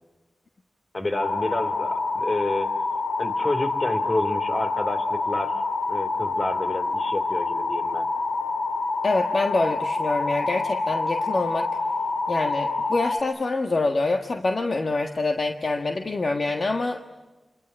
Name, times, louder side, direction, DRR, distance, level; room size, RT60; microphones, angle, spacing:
voice 1, 0.9-2.7 3.2-5.5 5.9-8.1, left 2 dB, 40° left, 9 dB, 3.1 m, -29 dB
sound 1, 1.1-13.2, left 3 dB, 85° left, 2.8 m, -27 dB
voice 2, 9.0-11.7 12.3-17.0, left 3 dB, 55° left, 5 dB, 1.6 m, -25 dB
28.5 x 24.0 x 8.8 m, 1.2 s
wide cardioid pair, 75°, 0 cm